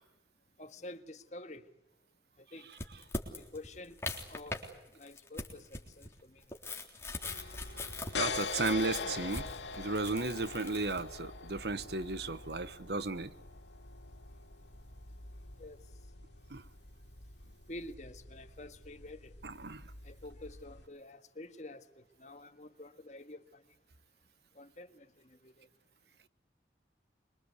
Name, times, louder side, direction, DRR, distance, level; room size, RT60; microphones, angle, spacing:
voice 1, 0.6-1.6 2.5-2.7 3.4-4.0 4.3-4.6 4.9-6.4 15.6-15.8 17.7-19.3 20.0-21.8 22.2-23.6 24.6-25.7, left 1 dB, 40° left, 1.7 m, -48 dB
sound 1, 2.7-4.7 5.0-11.0, left 2 dB, 15° left, 3.6 m, -41 dB
sound 2, 7.2-20.8, left 4 dB, 85° left, 2.3 m, -43 dB
voice 2, 8.2-9.5 9.8-13.3 16.5-16.6 19.4-19.8, right 3 dB, 70° right, 1.2 m, -34 dB
25.5 x 23.5 x 8.3 m
head